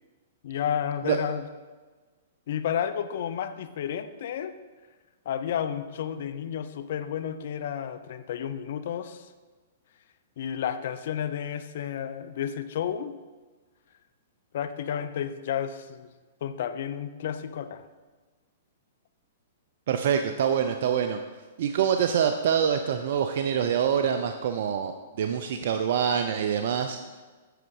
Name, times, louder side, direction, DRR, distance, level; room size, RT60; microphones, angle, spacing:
voice 1, 0.4-1.4 2.5-4.6 5.3-9.3 10.4-13.2 14.5-16.1 16.4-17.9, left 9 dB, 65° left, 12 dB, 0.6 m, -31 dB
voice 2, 19.9-21.2 21.6-27.0, right 8 dB, 60° right, 7 dB, 0.5 m, -25 dB
8.0 x 7.0 x 4.8 m, 1.3 s
hypercardioid pair, 125°, 0 cm